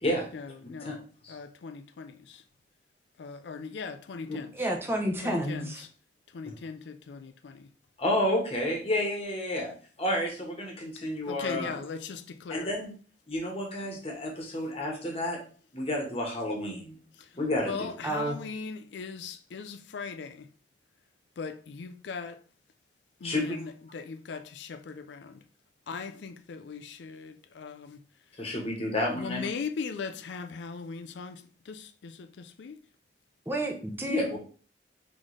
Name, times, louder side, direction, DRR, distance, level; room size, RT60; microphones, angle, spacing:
voice 1, 0.3-2.4 3.2-4.7 5.2-5.9 6.3-7.7 11.0-12.7 17.2-20.5 21.4-22.4 23.2-25.4 25.9-28.0 29.1-32.8, left 5 dB, 70° left, 0.4 m, -39 dB
voice 2, 4.5-5.8 18.0-18.4 33.5-34.4, right 1 dB, 10° right, 0.7 m, -30 dB
voice 3, 8.0-9.7 10.0-11.7 12.5-12.9 13.3-15.4 15.7-17.0 17.3-17.9 23.2-23.6 28.4-29.4 34.1-34.4, left 1 dB, 35° left, 1.2 m, -30 dB
4.0 x 3.8 x 3.2 m
head